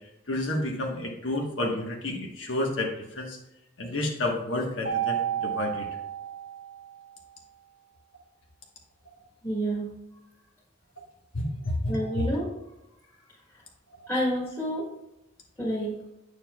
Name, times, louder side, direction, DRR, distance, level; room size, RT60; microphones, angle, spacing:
voice 1, 0.3-3.4 3.8-5.9 11.3-12.3, left 1 dB, 75° left, 0 dB, 1.2 m, -30 dB
Mallet percussion, 4.9-7.1, right 10 dB, 70° right, 0.8 m, -31 dB
voice 2, 9.4-9.9 11.9-12.5 14.1-14.9 15.6-16.0, equal, 15° left, -8 dB, 1.7 m, -29 dB
8.7 x 7.0 x 2.3 m, 0.91 s
head